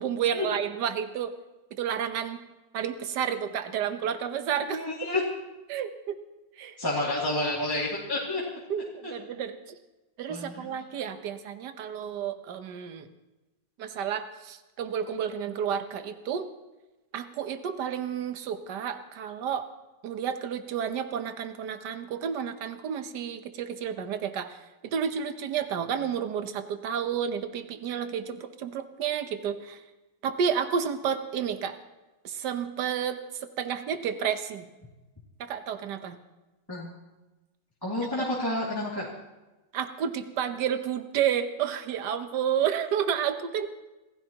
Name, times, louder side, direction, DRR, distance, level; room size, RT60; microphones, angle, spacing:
voice 1, 0.0-1.3 1.7-2.4 2.7-4.8 5.7-6.2 6.6-6.7 8.7-9.8 10.2-13.1 13.8-16.5 17.1-19.7 20.0-29.8 30.2-31.8 32.2-34.7 35.4-36.2 38.2-38.3 39.7-43.7, right 8 dB, 70° right, 9 dB, 1.6 m, -31 dB
voice 2, 4.7-5.2 6.8-8.4 9.0-9.1 10.3-10.7 36.7-37.0 37.8-39.1, left 1 dB, 10° left, -6 dB, 2.3 m, -30 dB
27.0 x 15.0 x 3.0 m, 1.1 s
omnidirectional pair, 1.9 m